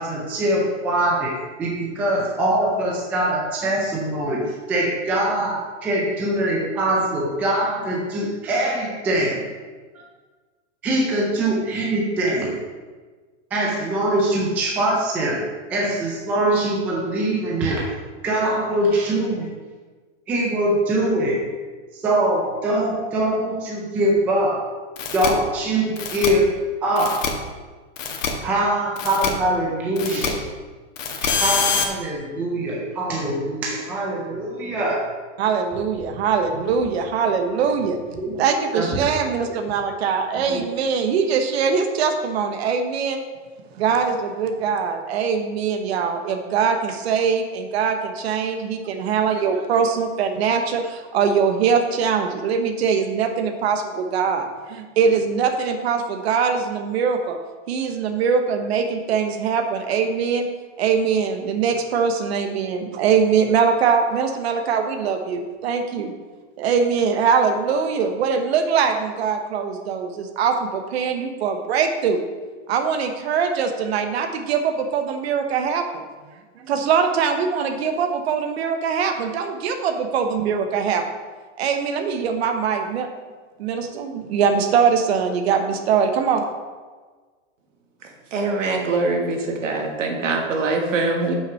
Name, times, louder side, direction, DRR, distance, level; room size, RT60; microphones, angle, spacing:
voice 1, 0.0-9.4 9.9-10.1 10.8-12.5 13.5-15.4 15.7-17.9 18.2-19.5 20.3-21.4 21.9-24.7 25.1-26.5 26.8-27.3 28.4-30.4 31.2-35.1 36.6-36.7 38.1-38.3 38.7-39.2 40.5-40.7, right 1 dB, 5° right, -2 dB, 0.4 m, -23 dB
sound 1, 25.0-25.3 26.0-26.3 27.0-27.3 28.0-28.3 29.0-29.3 30.0-30.3 31.0-31.8, left 6 dB, 85° left, 1.6 m, -24 dB
voice 2, 35.4-38.0 38.4-43.2 43.7-57.4 57.7-60.5 60.8-66.1 66.6-72.2 72.7-75.9 76.6-81.0 81.6-83.1 83.6-86.4, right 6 dB, 55° right, 6 dB, 1.1 m, -22 dB
voice 3, 88.3-91.3, right 3 dB, 80° right, 2 dB, 1.9 m, -23 dB
7.5 x 5.9 x 5.6 m, 1.4 s
supercardioid pair, 160°, 37 cm